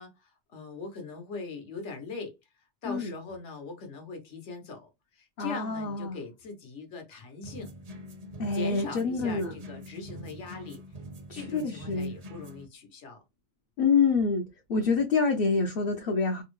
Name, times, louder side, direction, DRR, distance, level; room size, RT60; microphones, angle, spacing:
voice 1, 0.0-2.3 2.8-4.9 5.1-7.7 8.5-10.8 11.3-13.2, left 4 dB, 75° left, 1.2 m, -41 dB
voice 2, 5.4-6.2 8.4-9.5 11.3-12.2 13.8-14.4 14.7-16.4, left 4 dB, 60° left, 0.7 m, -26 dB
sound 1, 7.4-12.7, equal, 45° right, 0.5 m, -44 dB
3.4 x 2.0 x 3.0 m
omnidirectional pair, 1.2 m